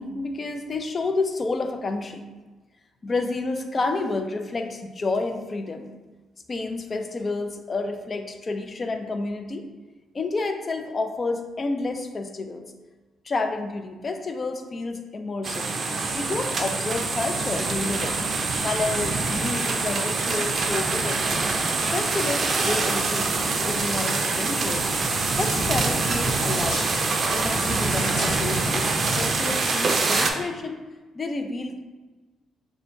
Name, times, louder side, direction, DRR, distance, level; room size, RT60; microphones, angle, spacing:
voice 1, 0.0-2.3 3.0-5.9 6.5-9.7 10.1-12.7 13.2-15.7 16.1-18.2 18.6-21.2 21.9-24.9 25.4-26.8 27.3-30.8 31.1-31.8, left 3 dB, 35° left, 5 dB, 0.4 m, -30 dB
sound 1, 15.4-30.3, right 3 dB, 45° right, 0.5 m, -25 dB
sound 2, 25.1-25.6 26.4-27.1 27.6-28.6, left 2 dB, 65° left, 1.0 m, -36 dB
6.1 x 2.2 x 2.6 m, 1.2 s
cardioid pair, 90°, 0 cm